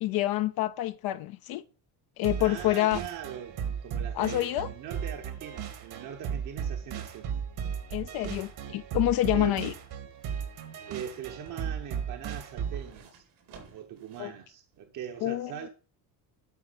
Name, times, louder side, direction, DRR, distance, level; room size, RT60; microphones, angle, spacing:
voice 1, 0.0-1.6 2.2-3.0 4.1-4.7 7.9-9.7 14.2-14.3 15.2-15.7, left 15 dB, 65° left, 0.6 m, -27 dB
sound 1, 2.2-12.9, right 7 dB, 70° right, 2.3 m, -36 dB
voice 2, 2.4-7.3 8.2-8.5 9.3-9.6 10.9-13.2 13.7-15.7, right 9 dB, 50° right, 1.1 m, -41 dB
sound 2, 9.5-14.4 14.7-14.8, right 5 dB, 85° right, 4.2 m, -55 dB
12.0 x 4.4 x 6.7 m
cardioid pair, 135°, 40 cm